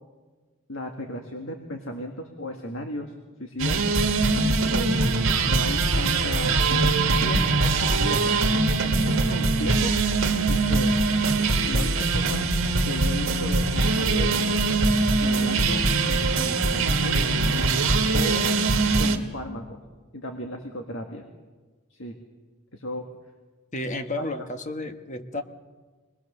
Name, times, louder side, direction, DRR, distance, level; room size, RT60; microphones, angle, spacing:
voice 1, 0.7-3.1 3.4-3.9 4.7-5.1 5.4-8.4 8.8-9.9 10.5-11.0 11.7-12.4 12.8-14.4 15.2-17.5 18.1-18.5 19.0-19.8 20.1-21.3 21.9-22.2 22.7-23.1 24.2-24.3, left 1 dB, 65° left, 3 dB, 1.7 m, -35 dB
sound 1, 3.6-19.2, right 3 dB, 70° right, 1.9 m, -22 dB
voice 2, 23.7-25.4, left 2 dB, 35° left, 8 dB, 1.2 m, -32 dB
24.5 x 19.5 x 6.7 m, 1.3 s
head